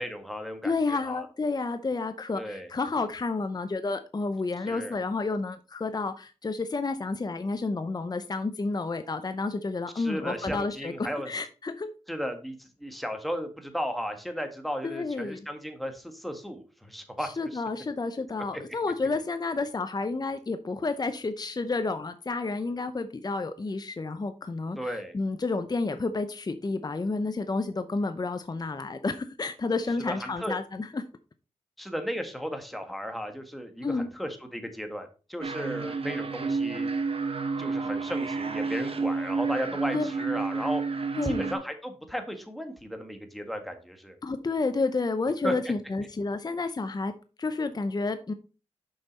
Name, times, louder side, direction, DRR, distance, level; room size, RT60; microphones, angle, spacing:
voice 1, 0.0-1.3 2.4-2.7 4.7-4.9 10.0-11.3 12.1-17.6 24.8-25.1 30.0-30.6 31.8-36.9 37.6-40.8 41.2-44.2 45.4-45.5, equal, ahead, 5 dB, 1.8 m, -35 dB
voice 2, 0.6-11.9 14.8-15.4 17.2-31.0 33.8-34.1 39.9-40.1 41.2-41.5 44.2-47.1 47.4-48.3, left 3 dB, 35° left, 9 dB, 0.7 m, -30 dB
sound 1, 35.4-41.6, right 4 dB, 50° right, 1.2 m, -30 dB
6.7 x 5.6 x 4.1 m, 0.35 s
cardioid pair, 55°, 12 cm